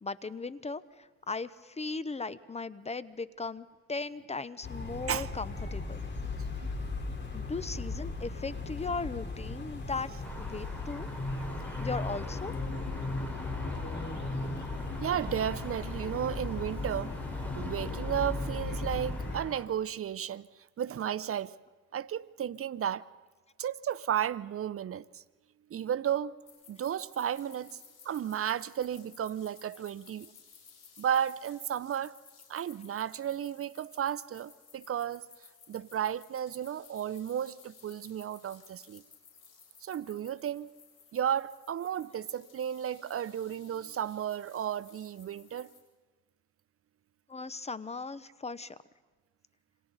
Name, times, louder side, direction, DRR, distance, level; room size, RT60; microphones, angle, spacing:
voice 1, 0.0-6.0 7.3-10.1 10.4-11.1 11.8-12.5 47.3-48.8, left 4 dB, 20° left, 0.8 m, -37 dB
sound 1, 4.6-19.4, left 3 dB, 35° left, 4.1 m, -36 dB
sound 2, 10.2-19.7, equal, 5° left, 3.9 m, -46 dB
voice 2, 15.0-17.1 17.5-20.5 20.8-21.5 21.9-23.1 23.6-25.2 25.7-26.4 26.7-27.8 28.0-30.3 31.0-32.1 32.5-35.3 35.7-39.0 39.8-40.7 41.1-45.7, right 9 dB, 50° right, 0.6 m, -33 dB
sound 3, 26.5-45.8, left 6 dB, 60° left, 7.8 m, -57 dB
29.0 x 26.0 x 4.1 m
cardioid pair, 90°, 30 cm